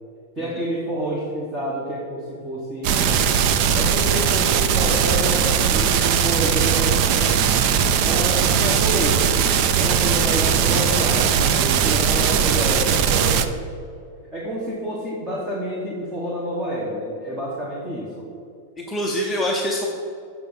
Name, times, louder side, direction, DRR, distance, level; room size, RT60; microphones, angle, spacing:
voice 1, 0.4-3.2 3.7-7.0 8.0-9.3 9.8-13.6 14.3-18.3, equal, 15° right, -4 dB, 1.0 m, -28 dB
sound 1, 2.8-13.4, right 7 dB, 40° right, 0.4 m, -19 dB
voice 2, 12.4-12.7 18.8-19.9, equal, 5° left, -2 dB, 0.6 m, -25 dB
7.2 x 5.8 x 5.5 m, 2.5 s
supercardioid pair, 170°, 0 cm